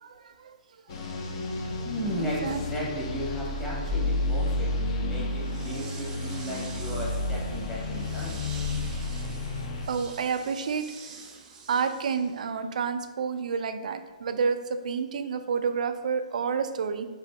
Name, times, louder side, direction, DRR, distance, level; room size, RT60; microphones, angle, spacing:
voice 1, 0.0-0.5 2.2-2.6 9.9-11.3 11.7-17.1, right 6 dB, 65° right, 9 dB, 0.4 m, -29 dB
sound 1, 0.9-9.9, left 2 dB, 40° left, 0.6 m, -31 dB
voice 2, 1.8-8.4, equal, 10° left, -6 dB, 1.0 m, -35 dB
sound 2, 5.3-12.5, right 4 dB, 15° right, 0.6 m, -47 dB
7.4 x 2.6 x 2.2 m, 1.3 s
hypercardioid pair, 150°, 4 cm